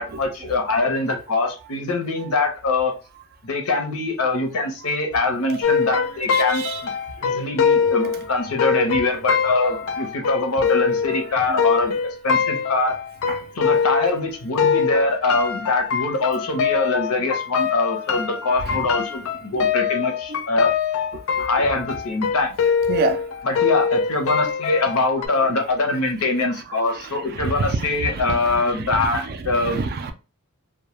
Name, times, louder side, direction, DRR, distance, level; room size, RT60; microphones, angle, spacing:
voice 1, 0.0-2.9 3.4-6.9 7.2-11.9 12.2-12.9 13.6-20.7 21.4-22.5 23.4-29.8, left 3 dB, 80° left, 0.7 m, -23 dB
voice 2, 5.5-5.9 6.3-6.8 8.0-8.1 8.8-8.9 11.1-11.7 13.3-13.4 18.6-18.9 20.3-20.4 21.6-21.7 22.9-23.2 26.8-30.1, right 3 dB, 45° right, 0.3 m, -29 dB
sound 1, 5.6-14.3 14.6-25.3, left 6 dB, 60° left, 0.3 m, -23 dB
2.2 x 2.1 x 3.0 m
head